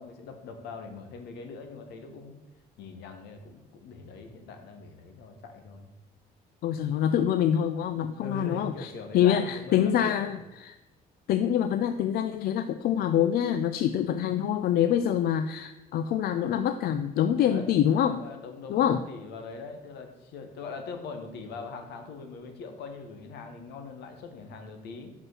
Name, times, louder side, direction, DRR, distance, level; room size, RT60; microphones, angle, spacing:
voice 1, 0.0-2.4 2.8-5.9 8.2-10.3 17.4-17.7 18.1-25.1, left 4 dB, 80° left, 6 dB, 1.2 m, -41 dB
voice 2, 6.6-10.4 10.6-10.7 11.3-18.2 18.7-19.0, left 9 dB, 65° left, 10 dB, 0.4 m, -25 dB
6.1 x 5.4 x 6.0 m, 1.0 s
cardioid pair, 110°, 17 cm